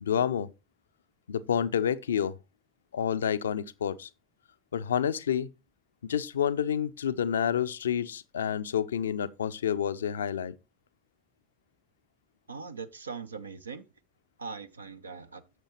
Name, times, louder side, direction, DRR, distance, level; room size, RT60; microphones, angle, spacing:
voice 1, 0.0-0.5 1.3-2.3 2.9-4.1 4.7-5.5 6.0-10.6, left 8 dB, 75° left, 0.4 m, -29 dB
voice 2, 12.5-13.9 14.4-15.4, right 5 dB, 80° right, 0.4 m, -40 dB
9.1 x 6.8 x 2.9 m
figure-of-eight pair, 70°, 0 cm